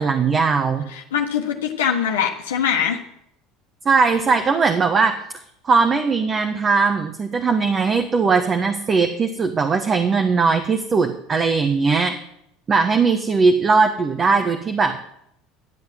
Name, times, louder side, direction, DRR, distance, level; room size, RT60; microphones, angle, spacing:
voice 1, 0.0-0.9 3.8-5.2 5.6-12.1 12.7-15.0, right 4 dB, 35° right, 5 dB, 1.3 m, -19 dB
voice 2, 0.9-3.0, left 8 dB, 90° left, 1 dB, 1.3 m, -22 dB
12.0 x 7.8 x 7.5 m, 0.73 s
hypercardioid pair, 85°, 0 cm